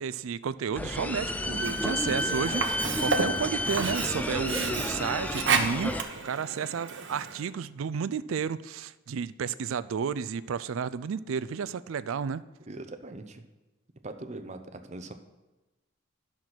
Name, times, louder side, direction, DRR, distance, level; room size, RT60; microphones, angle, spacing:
voice 1, 0.0-12.4, right 6 dB, 75° right, 17 dB, 0.4 m, -32 dB
sound 1, 0.8-6.0, left 1 dB, 5° left, 0.4 m, -31 dB
Sink (filling or washing), 1.5-7.5, right 5 dB, 60° right, 1.0 m, -32 dB
voice 2, 12.7-13.4 14.0-15.1, right 2 dB, 35° right, 7 dB, 0.7 m, -41 dB
10.5 x 5.9 x 6.1 m, 1.1 s
head